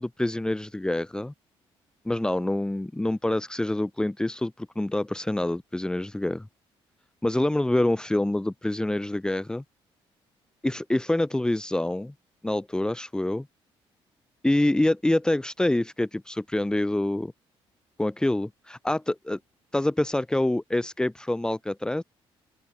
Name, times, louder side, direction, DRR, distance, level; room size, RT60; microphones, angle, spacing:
voice 1, 0.0-1.3 2.0-6.5 7.2-9.6 10.6-12.1 12.4-13.5 14.4-17.3 18.0-19.4 19.7-22.0, left 1 dB, 5° left, 1.5 m, -26 dB
open air
cardioid pair, 120°, 10 cm